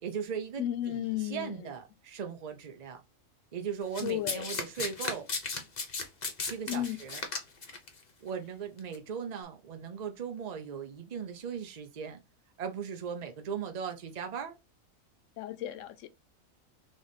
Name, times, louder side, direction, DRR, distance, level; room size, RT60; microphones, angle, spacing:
voice 1, 0.0-3.0 3.5-5.3 6.4-7.2 8.2-12.2 12.6-14.5, right 7 dB, 60° right, 0.4 m, -38 dB
voice 2, 0.6-1.7 4.0-4.6 6.7-7.0 15.4-16.1, left 12 dB, 75° left, 0.9 m, -34 dB
Domestic sounds home sounds, 3.9-7.9 8.8-9.0, left 4 dB, 40° left, 0.8 m, -35 dB
3.5 x 3.1 x 3.9 m
omnidirectional pair, 1.4 m